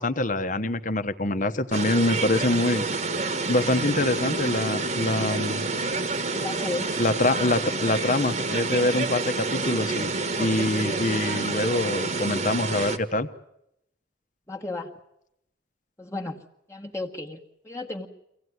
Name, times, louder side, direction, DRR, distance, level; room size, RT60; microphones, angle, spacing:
voice 1, 0.0-2.8 3.5-5.6 7.0-10.1 10.4-13.3, left 2 dB, 45° left, 11 dB, 1.1 m, -25 dB
sound 1, 1.7-13.0, right 3 dB, 40° right, 1.4 m, -28 dB
sound 2, 3.7-8.3, left 1 dB, 80° right, 1.1 m, -40 dB
voice 2, 6.3-7.0 14.5-14.9 16.0-16.4 16.7-18.1, left 2 dB, 15° left, 0 dB, 1.3 m, -34 dB
24.5 x 17.0 x 9.5 m, 0.82 s
head